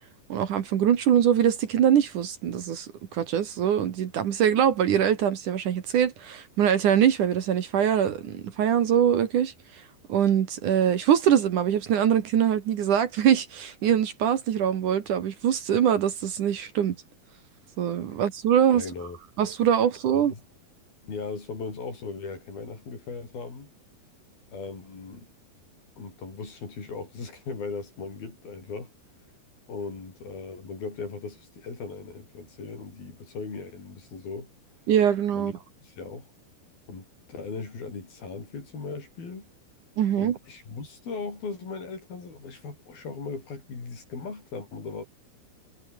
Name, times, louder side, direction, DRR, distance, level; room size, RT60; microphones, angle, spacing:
voice 1, 0.3-9.5 10.1-17.0 17.8-18.8 19.4-20.3 34.9-35.5 40.0-40.4, right 9 dB, 60° right, 2.9 m, -23 dB
voice 2, 18.7-19.2 20.1-20.4 21.0-23.7 24.5-25.3 26.0-28.9 29.7-34.5 35.3-35.5 35.8-36.3 36.9-39.5 40.2-45.0, left 4 dB, 70° left, 8.9 m, -38 dB
omnidirectional pair, 4.4 m